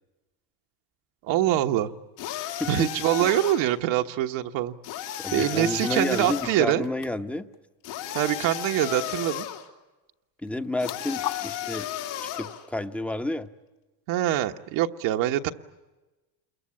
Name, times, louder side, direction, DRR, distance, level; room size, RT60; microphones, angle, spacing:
voice 1, 1.2-1.9 2.7-4.7 5.3-6.8 8.1-9.5 14.1-15.5, right 13 dB, 60° right, 4 dB, 1.4 m, -24 dB
sound 1, 2.2-3.8 4.8-6.6 7.8-9.7 10.8-12.6, left 12 dB, 75° left, 3.3 m, -34 dB
voice 2, 5.2-7.5 10.4-11.9 12.2-13.5, left 1 dB, 5° left, 8 dB, 1.0 m, -30 dB
sound 2, 6.1-7.1 7.4-7.6 7.8-8.5 10.4-11.4, left 11 dB, 40° left, 1.2 m, -38 dB
28.0 x 22.5 x 8.6 m, 1.1 s
supercardioid pair, 120°, 50 cm